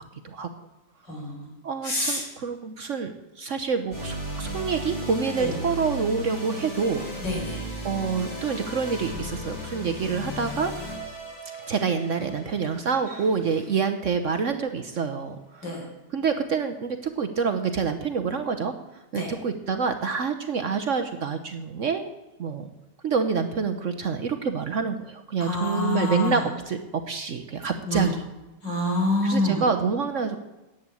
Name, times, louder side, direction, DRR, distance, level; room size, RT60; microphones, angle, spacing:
voice 1, 1.1-1.5 1.8-2.2 5.4-5.5 7.2-7.6 15.6-15.8 19.2-19.3 25.4-26.4 27.8-28.1 28.6-29.6, left 2 dB, 80° left, -2 dB, 5.2 m, -27 dB
voice 2, 1.6-7.1 7.8-10.7 11.7-15.9 16.1-18.7 19.1-22.1 22.4-22.7 23.0-26.8 27.1-28.2 29.2-30.4, right 5 dB, 55° right, 8 dB, 1.0 m, -27 dB
sound 1, 3.9-14.3, equal, 60° left, 5.9 m, -36 dB
10.5 x 8.3 x 8.4 m, 1.0 s
omnidirectional pair, 1.9 m